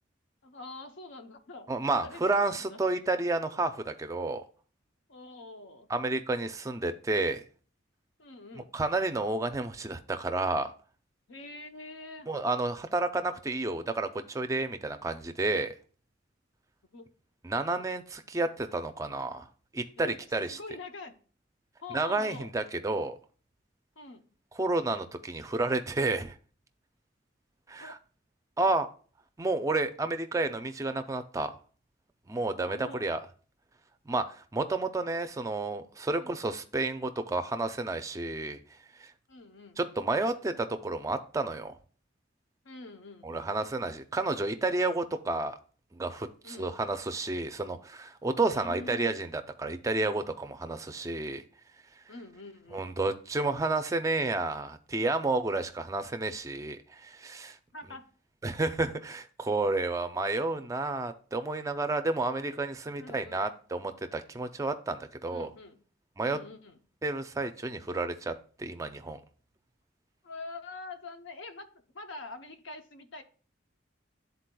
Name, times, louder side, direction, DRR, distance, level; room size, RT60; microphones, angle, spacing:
voice 1, 0.4-2.8 5.1-5.9 8.2-8.7 11.3-12.3 16.9-17.1 17.8-17.9 20.0-21.1 21.8-22.5 24.0-24.3 27.8-27.9 32.6-33.1 36.2-36.4 39.3-39.8 42.6-43.5 46.4-46.7 48.4-49.1 52.1-52.9 57.7-58.1 63.0-63.5 65.3-65.8 66.2-66.8 70.2-71.7 71.9-73.2, left 2 dB, 75° left, 7 dB, 0.8 m, -45 dB
voice 2, 1.7-4.4 5.9-7.4 8.7-10.7 12.3-15.7 17.4-19.5 19.7-20.1 20.3-20.6 21.9-23.2 24.6-26.3 27.7-28.0 28.6-28.9 29.4-31.5 32.3-33.2 34.1-38.6 39.0-39.1 39.8-41.7 43.2-45.6 45.9-49.3 49.6-51.4 52.7-57.6 58.4-65.5 66.2-66.4 67.0-68.3 68.6-69.2, right 2 dB, 15° right, 8 dB, 0.4 m, -31 dB
11.0 x 4.0 x 2.2 m, 0.41 s
head